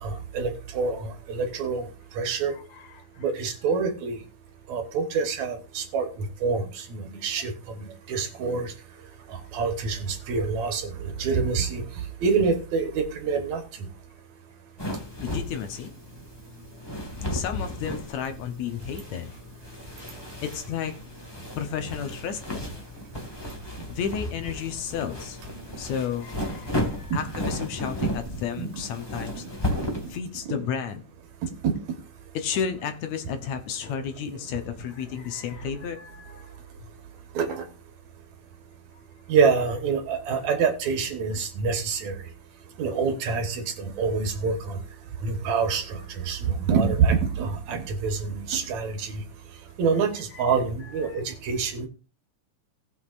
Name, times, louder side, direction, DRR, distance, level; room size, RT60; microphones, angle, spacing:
voice 1, 0.0-1.8 2.2-2.5 3.2-4.2 4.7-8.7 9.3-11.8 12.2-13.9 27.1-27.2 28.6-28.7 31.6-31.7 37.4-37.6 39.3-42.2 42.8-44.8 45.2-46.0 46.3-49.2 49.8-51.9, right 5 dB, 70° right, 6 dB, 2.5 m, -26 dB
voice 2, 2.3-3.2 15.2-15.9 17.3-19.3 20.4-21.0 21.6-22.7 23.9-25.4 25.8-29.4 30.1-31.0 32.3-36.5 41.3-41.4 50.3-50.4 51.1-51.2, left 7 dB, 70° left, 7 dB, 2.2 m, -32 dB
sound 1, 14.8-30.2, left 1 dB, 15° left, 0.9 m, -34 dB
19.0 x 6.4 x 2.5 m, 0.36 s
omnidirectional pair, 3.5 m